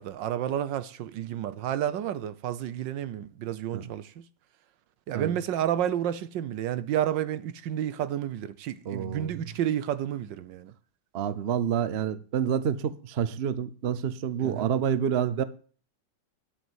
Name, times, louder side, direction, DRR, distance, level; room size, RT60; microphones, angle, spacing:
voice 1, 0.0-4.2 5.1-10.7 14.4-14.7, right 10 dB, 65° right, 1.3 m, -30 dB
voice 2, 8.9-9.3 11.1-15.4, right 8 dB, 85° right, 0.5 m, -28 dB
10.5 x 8.3 x 8.0 m
omnidirectional pair, 2.3 m